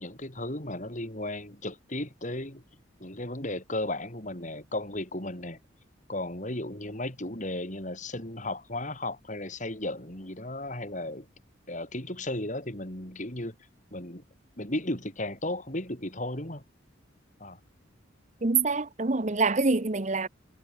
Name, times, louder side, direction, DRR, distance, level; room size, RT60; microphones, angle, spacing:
voice 1, 0.0-2.6 3.0-5.6 6.1-11.3 11.7-13.6 13.9-14.2 14.6-16.6 17.4-17.6, left 1 dB, 40° left, 5.6 m, -35 dB
voice 2, 18.4-20.3, right 4 dB, 40° right, 0.9 m, -25 dB
head